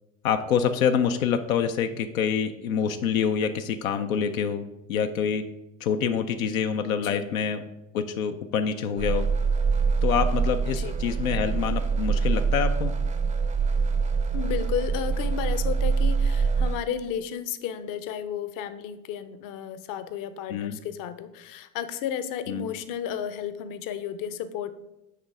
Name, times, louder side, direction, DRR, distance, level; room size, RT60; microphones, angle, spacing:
voice 1, 0.2-5.4 5.8-7.6 7.9-9.3 10.0-12.9 20.5-20.8 22.5-22.6, left 7 dB, 90° left, 7 dB, 0.5 m, -26 dB
voice 2, 6.9-7.4 10.8-10.9 14.3-24.7, left 9 dB, 50° left, 12 dB, 0.7 m, -33 dB
sound 1, 9.0-16.8, right 5 dB, 20° right, 0.5 m, -25 dB
7.8 x 3.1 x 4.8 m, 0.92 s
hypercardioid pair, 70°, 41 cm